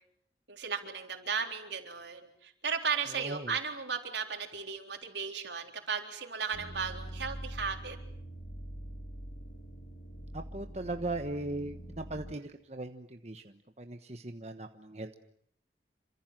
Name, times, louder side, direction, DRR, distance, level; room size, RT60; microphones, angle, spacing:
voice 1, 0.5-8.0, right 5 dB, 80° right, 4 dB, 3.9 m, -35 dB
voice 2, 3.1-3.5 10.3-15.2, right 2 dB, 35° right, 6 dB, 1.2 m, -39 dB
sound 1, 6.5-12.3, right 1 dB, 55° left, 2.6 m, -44 dB
28.0 x 25.5 x 7.7 m, 0.68 s
head